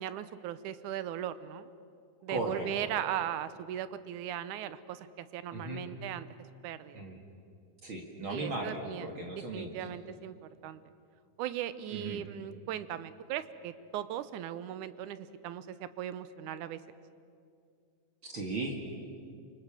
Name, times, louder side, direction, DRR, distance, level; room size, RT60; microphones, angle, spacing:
voice 1, 0.0-1.7 2.2-6.3 6.6-7.0 8.3-10.4 10.6-10.8 11.4-16.8, right 11 dB, 75° right, 14 dB, 2.3 m, -38 dB
voice 2, 2.3-2.9 5.5-5.8 6.9-7.2 7.8-9.8 11.9-12.2 18.2-18.9, right 2 dB, 45° right, 1 dB, 2.7 m, -37 dB
28.0 x 25.5 x 7.4 m, 2.4 s
omnidirectional pair, 3.6 m